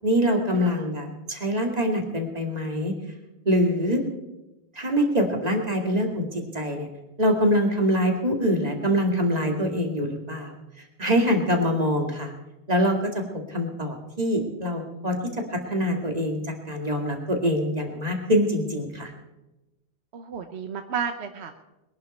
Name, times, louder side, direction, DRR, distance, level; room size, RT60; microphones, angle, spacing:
voice 1, 0.0-2.9 3.5-4.0 4.8-6.9 7.2-10.5 11.0-12.3 12.7-13.2 13.5-15.2 15.5-16.4 16.7-19.1, equal, 35° right, 2 dB, 2.4 m, -24 dB
voice 2, 20.1-21.5, right 6 dB, 75° right, 6 dB, 1.2 m, -32 dB
22.0 x 11.0 x 4.3 m, 1.0 s
omnidirectional pair, 1.1 m